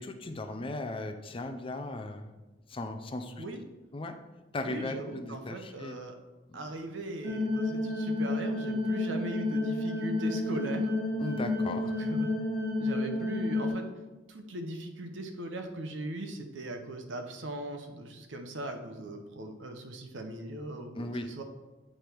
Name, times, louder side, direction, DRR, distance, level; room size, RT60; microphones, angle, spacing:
voice 1, 0.0-2.3 2.7-3.4 3.9-4.2 4.5-6.0 6.5-6.6 11.2-11.9 20.9-21.3, left 2 dB, 30° left, 7 dB, 0.5 m, -37 dB
voice 2, 4.6-6.2 6.5-10.9 12.0-12.3 12.8-13.9 14.3-21.4, right 2 dB, 90° right, 6 dB, 0.8 m, -39 dB
sound 1, 7.2-13.7, left 2 dB, 60° right, 1.6 m, -30 dB
8.7 x 3.4 x 4.5 m, 1.1 s
head